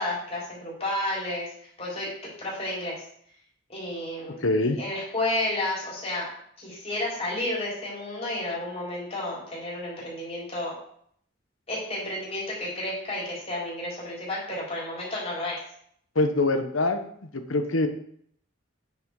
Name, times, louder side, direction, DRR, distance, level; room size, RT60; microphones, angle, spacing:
voice 1, 0.0-1.5 1.8-3.0 3.7-6.3 6.6-10.7 11.7-15.6, left 1 dB, 30° left, -6 dB, 4.4 m, -31 dB
voice 2, 4.4-4.8 16.1-17.0 17.3-17.9, left 2 dB, 75° left, 7 dB, 1.1 m, -24 dB
9.4 x 6.0 x 4.8 m, 0.64 s
head